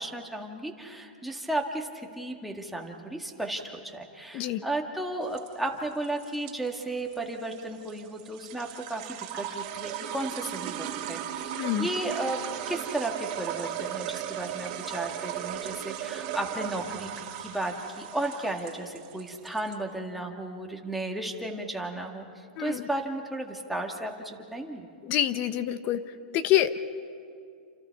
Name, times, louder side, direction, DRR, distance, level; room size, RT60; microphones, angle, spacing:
voice 1, 0.0-11.2 11.8-12.4 12.7-24.9, right 1 dB, ahead, 1 dB, 1.9 m, -34 dB
sound 1, 5.2-19.8, right 10 dB, 40° right, 2.3 m, -37 dB
voice 2, 11.6-11.9 22.6-22.8 25.0-26.0 26.3-26.8, left 12 dB, 35° left, 12 dB, 1.0 m, -26 dB
29.0 x 27.5 x 4.8 m, 2.4 s
hypercardioid pair, 150°, 5 cm